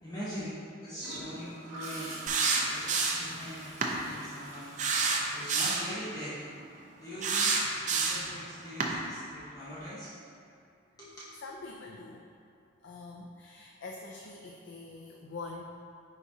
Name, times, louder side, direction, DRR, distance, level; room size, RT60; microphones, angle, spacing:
voice 1, 0.0-2.1 2.7-4.7 5.3-6.4 7.0-7.6 7.9-10.2 11.0-11.3, equal, 20° left, -10 dB, 0.9 m, -42 dB
Gurgling / Toilet flush, 1.0-6.7 8.7-9.0, right 1 dB, 90° right, 1.5 m, -46 dB
sound 1, 2.3-3.3 3.8-4.0 4.8-5.9 7.2-8.3 8.8-8.9, right 4 dB, 35° right, 0.5 m, -28 dB
voice 2, 3.3-3.6 9.0-9.2 11.4-12.2 12.8-15.7, left 3 dB, 60° left, 0 dB, 0.4 m, -45 dB
9.5 x 4.0 x 2.7 m, 2.5 s
head